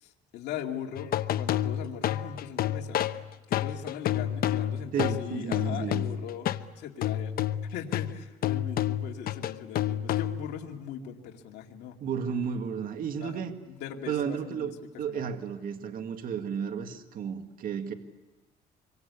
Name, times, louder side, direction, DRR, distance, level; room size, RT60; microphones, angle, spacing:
voice 1, 0.0-1.1 1.4-3.1 3.5-6.5 6.8-7.4 7.7-11.9 13.2-13.4 13.7-14.7 15.1-15.3, left 9 dB, 80° left, 1 dB, 2.4 m, -39 dB
sound 1, 1.0-6.7 7.0-10.6, left 11 dB, 60° left, 1.0 m, -29 dB
voice 2, 4.9-6.0 12.0-13.5 14.1-17.9, right 7 dB, 60° right, 6 dB, 2.0 m, -33 dB
26.5 x 24.0 x 8.3 m, 1.1 s
cardioid pair, 110°, 17 cm